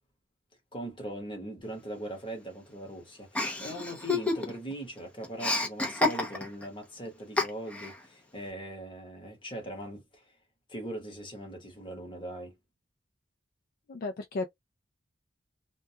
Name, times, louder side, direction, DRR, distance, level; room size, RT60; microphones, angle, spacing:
voice 1, 0.7-10.2 10.7-12.5, right 1 dB, 25° left, 1.1 m, -40 dB
Chuckle chortle, 3.3-4.7 5.0-6.6 7.4-7.9, left 2 dB, 5° left, 0.6 m, -29 dB
voice 2, 13.9-14.5, left 3 dB, 50° left, 0.4 m, -34 dB
2.3 x 2.2 x 2.7 m
head